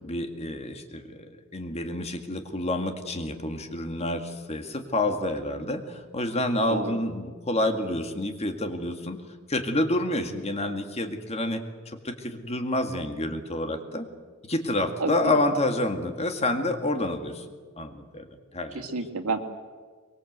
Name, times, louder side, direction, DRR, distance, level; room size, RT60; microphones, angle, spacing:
voice 1, 0.0-9.2 9.5-14.1 14.5-17.4 17.8-18.3 18.5-18.8, left 1 dB, 30° left, 6 dB, 2.1 m, -28 dB
voice 2, 15.0-15.4 18.7-19.4, right 3 dB, 85° right, 4 dB, 2.5 m, -30 dB
23.5 x 22.5 x 8.1 m, 1.5 s
head